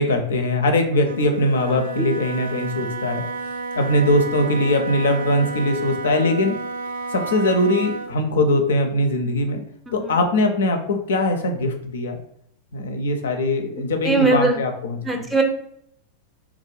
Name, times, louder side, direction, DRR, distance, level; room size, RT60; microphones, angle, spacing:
voice 1, 0.0-3.2 3.7-6.6 7.1-9.6 9.9-12.2 12.7-15.2, left 1 dB, 65° left, 5 dB, 0.4 m, -21 dB
Wind instrument woodwind instrument, 1.0-8.2, right 3 dB, 65° right, 0.3 m, -31 dB
voice 2, 9.9-10.2 14.0-14.6 15.0-15.4, right 3 dB, 10° right, 3 dB, 0.5 m, -20 dB
3.5 x 2.4 x 3.1 m, 0.71 s
figure-of-eight pair, 90°, 0 cm